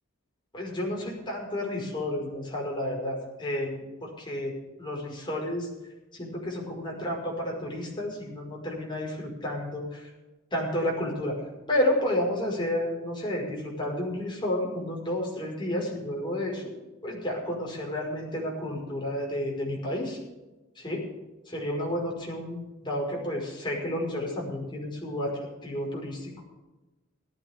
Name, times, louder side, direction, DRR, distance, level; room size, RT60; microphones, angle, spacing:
voice 1, 0.5-4.5 4.8-5.7 6.1-10.1 10.5-11.4 11.7-16.7 17.0-20.2 20.8-21.0 21.5-25.3 25.6-26.3, left 1 dB, 25° left, -2 dB, 5.4 m, -31 dB
18.0 x 13.0 x 3.7 m, 1.1 s
head